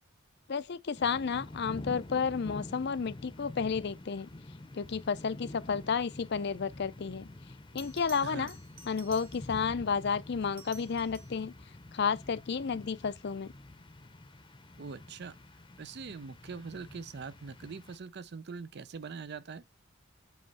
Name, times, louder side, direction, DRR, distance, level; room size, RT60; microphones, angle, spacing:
voice 1, 0.5-4.3 4.7-7.3 7.7-8.5 8.9-11.5 11.9-13.5, left 6 dB, 55° left, 0.5 m, -32 dB
sound 1, 0.9-18.0, left 1 dB, 25° left, 0.7 m, -47 dB
Bell, 7.8-9.7 10.4-11.5 14.2-14.4, right 4 dB, 30° right, 1.0 m, -53 dB
voice 2, 8.2-8.5 14.8-15.4 15.8-19.6, right 5 dB, 55° right, 0.5 m, -43 dB
7.9 x 3.1 x 5.5 m
head